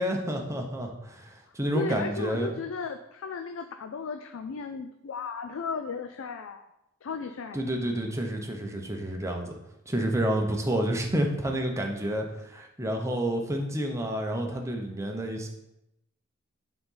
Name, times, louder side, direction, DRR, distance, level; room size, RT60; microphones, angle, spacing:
voice 1, 0.0-2.5 7.5-9.6 9.9-15.5, right 1 dB, 15° right, 2 dB, 0.9 m, -29 dB
voice 2, 1.7-6.7 7.0-7.7, left 5 dB, 65° left, 8 dB, 0.4 m, -35 dB
8.6 x 4.0 x 3.9 m, 0.86 s
head